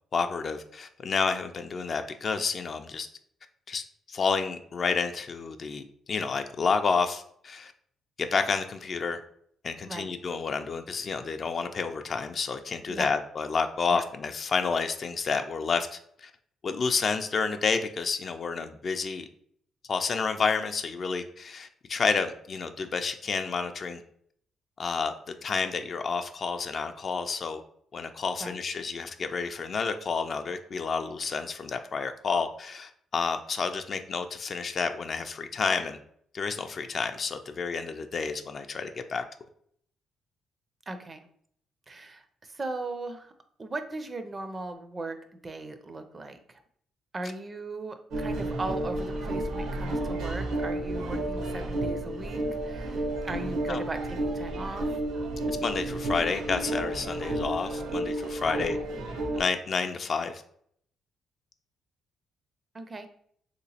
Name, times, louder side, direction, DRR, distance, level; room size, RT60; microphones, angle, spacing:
voice 1, 0.1-3.1 3.7-7.7 8.2-9.2 9.6-16.3 16.6-19.3 19.9-24.0 24.8-27.6 27.9-36.0 36.3-39.2 53.7-53.8 55.5-58.8 59.3-60.4, left 5 dB, 45° left, 8 dB, 0.3 m, -30 dB
voice 2, 40.9-41.3 41.9-43.3 43.6-46.6 47.1-55.0 58.6-58.8 62.7-63.1, right 2 dB, 30° right, 8 dB, 0.4 m, -38 dB
sound 1, 48.1-59.4, right 1 dB, 80° right, 0.7 m, -31 dB
3.3 x 2.9 x 2.8 m, 0.65 s
cardioid pair, 90°, 0 cm